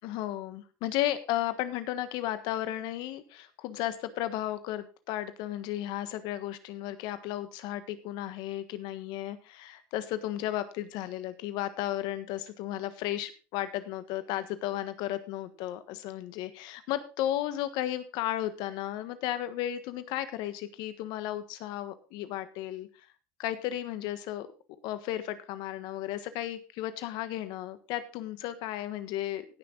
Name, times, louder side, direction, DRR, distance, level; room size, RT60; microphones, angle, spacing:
voice 1, 0.0-22.9 23.4-24.5 24.8-29.4, left 13 dB, 70° left, 12 dB, 1.4 m, -34 dB
17.0 x 6.2 x 3.9 m, 0.33 s
supercardioid pair, 95°, 8 cm